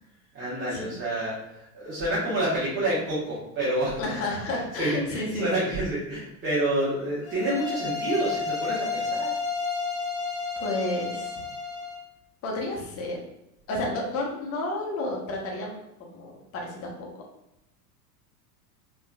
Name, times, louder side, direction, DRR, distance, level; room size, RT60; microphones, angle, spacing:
voice 1, 0.3-4.0 4.8-9.3, right 1 dB, 25° right, -10 dB, 1.1 m, -28 dB
voice 2, 4.0-5.7 10.6-11.4 12.4-13.2 13.7-17.1, left 2 dB, 30° left, -1 dB, 0.8 m, -31 dB
sound 1, 7.2-12.0, left 5 dB, 60° left, 1.0 m, -31 dB
3.5 x 2.4 x 2.2 m, 0.90 s
figure-of-eight pair, 90°, 48 cm